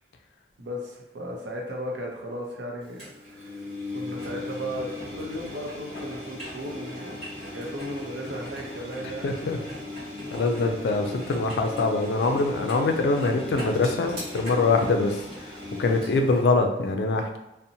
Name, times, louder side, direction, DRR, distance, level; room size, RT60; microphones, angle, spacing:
voice 1, 0.6-3.6 3.9-7.2 7.5-9.4 10.5-11.0, equal, 90° right, -1 dB, 0.6 m, -36 dB
Engine, 3.0-16.4, left 1 dB, 35° right, 1.2 m, -37 dB
voice 2, 9.2-9.6 10.3-17.4, left 3 dB, 70° left, 5 dB, 0.3 m, -24 dB
2.6 x 2.0 x 2.7 m, 0.96 s
head